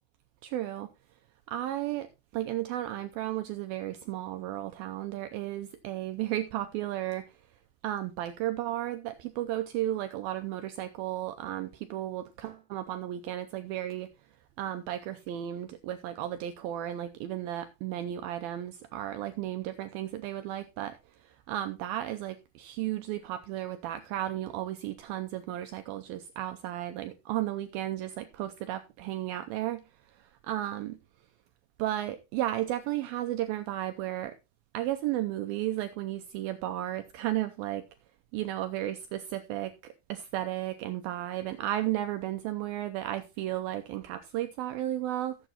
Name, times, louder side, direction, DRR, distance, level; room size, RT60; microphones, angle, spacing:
voice 1, 0.4-0.9 1.5-2.1 2.3-7.4 7.8-14.1 14.6-31.0 31.8-34.4 34.7-37.9 38.3-45.4, right 13 dB, 85° right, 2.1 m, -34 dB
15.0 x 7.9 x 2.9 m
omnidirectional pair, 5.0 m